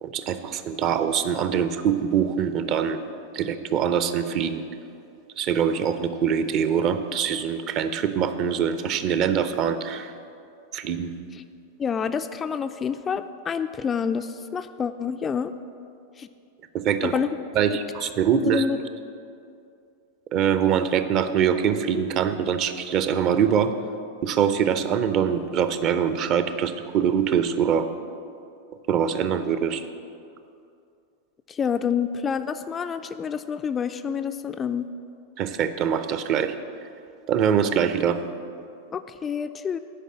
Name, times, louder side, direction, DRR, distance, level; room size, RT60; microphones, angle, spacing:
voice 1, 0.0-3.0 3.3-4.6 5.4-10.1 10.7-11.1 16.7-17.1 17.5-18.6 20.3-23.7 24.2-27.9 28.9-29.8 35.4-36.5 37.3-38.2, right 8 dB, 35° right, 11 dB, 0.6 m, -23 dB
voice 2, 11.8-15.5 16.2-16.3 17.0-17.3 17.7-17.8 18.3-18.8 31.5-34.8 38.9-39.8, left 7 dB, 20° left, 9 dB, 0.3 m, -28 dB
10.0 x 5.3 x 7.5 m, 2.5 s
figure-of-eight pair, 90°, 0 cm